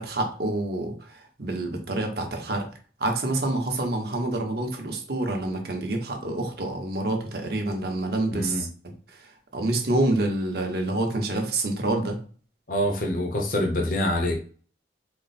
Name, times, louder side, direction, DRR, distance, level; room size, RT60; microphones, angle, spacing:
voice 1, 0.0-2.7 3.0-8.7 9.1-12.2, right 2 dB, 55° right, 2 dB, 0.9 m, -27 dB
voice 2, 8.3-8.6 12.7-14.4, left 1 dB, 50° left, 0 dB, 0.7 m, -25 dB
4.3 x 2.0 x 4.1 m, 0.41 s
head